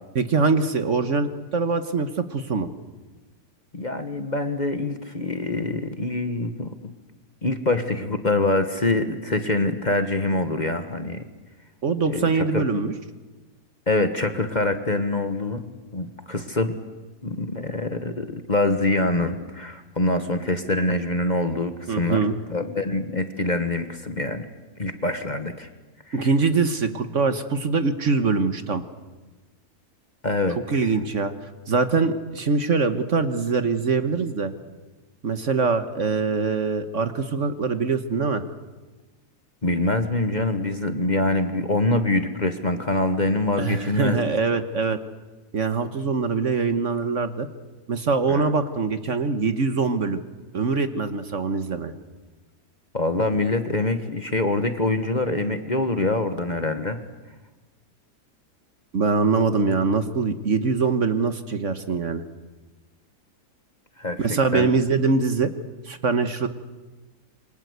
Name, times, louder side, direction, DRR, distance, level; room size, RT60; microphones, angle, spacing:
voice 1, 0.1-2.7 11.8-12.9 21.9-22.4 26.1-28.8 30.7-31.3 31.7-34.5 35.2-38.4 43.6-45.0 45.5-47.5 47.9-50.2 50.5-51.9 58.9-62.2 64.2-65.5 65.8-66.5, right 4 dB, 50° right, 10 dB, 1.5 m, -23 dB
voice 2, 3.7-6.8 7.4-11.3 12.1-12.6 13.9-15.7 15.9-16.7 17.2-24.5 24.8-25.7 26.1-26.3 30.2-30.9 39.6-44.3 48.3-48.5 52.9-57.0 64.0-64.7, left 2 dB, 30° left, 8 dB, 1.4 m, -25 dB
27.5 x 24.0 x 8.1 m, 1.2 s
omnidirectional pair, 1.7 m